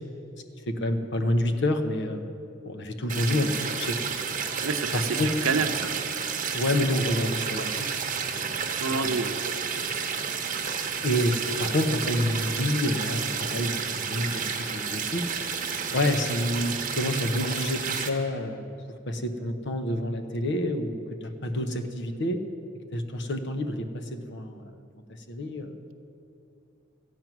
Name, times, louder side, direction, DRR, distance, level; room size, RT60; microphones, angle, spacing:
voice 1, 0.7-2.3 2.6-4.0 4.9-5.6 6.5-7.9 8.3-8.5 9.0-9.2 9.9-10.0 11.0-15.4 15.9-18.6 19.1-22.4 22.9-24.7 25.3-25.7, left 1 dB, 55° left, 7 dB, 0.8 m, -28 dB
sound 1, 3.1-18.1, right 6 dB, 40° right, 1.0 m, -31 dB
voice 2, 4.6-5.9 8.8-9.3, right 4 dB, 85° right, 8 dB, 0.7 m, -28 dB
13.5 x 9.2 x 6.0 m, 2.6 s
head